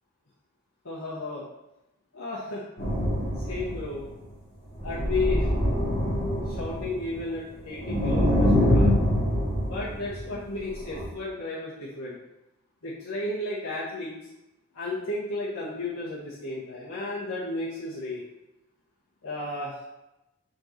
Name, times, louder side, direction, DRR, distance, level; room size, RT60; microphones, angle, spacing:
voice 1, 0.8-1.4 2.1-2.6 3.4-4.0 4.8-5.5 6.4-8.9 9.6-12.2 12.8-14.2 14.7-18.2 19.2-19.8, left 2 dB, 90° left, -9 dB, 1.6 m, -33 dB
sound 1, 2.8-4.1 4.8-7.2 7.5-10.4 10.8-11.0, equal, 40° left, 2.3 m, -25 dB
7.4 x 5.4 x 3.0 m, 0.95 s
head